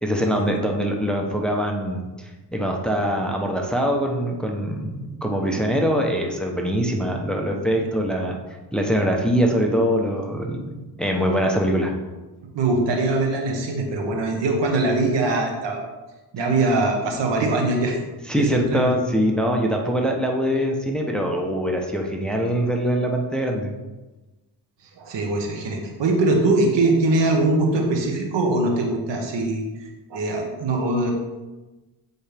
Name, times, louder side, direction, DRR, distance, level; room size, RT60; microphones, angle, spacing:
voice 1, 0.0-8.4 8.7-10.7 11.0-11.9 18.3-23.7, equal, ahead, 1 dB, 0.9 m, -23 dB
voice 2, 12.5-15.8 16.3-18.0 18.3-18.9 25.0-29.6 30.1-31.1, right 2 dB, 80° right, 2 dB, 1.4 m, -22 dB
8.0 x 4.3 x 3.5 m, 1.1 s
cardioid pair, 90°, 43 cm